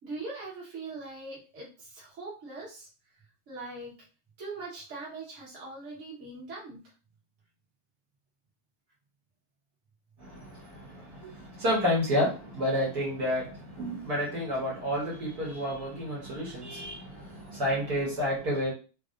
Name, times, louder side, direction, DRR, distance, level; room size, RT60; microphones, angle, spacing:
voice 1, 0.0-2.9 3.5-4.0 4.4-6.8 17.1-17.6, right 3 dB, 45° right, -5 dB, 1.5 m, -41 dB
voice 2, 10.2-18.7, equal, 65° right, -5 dB, 1.7 m, -30 dB
4.0 x 2.0 x 2.4 m, 0.34 s
omnidirectional pair, 1.8 m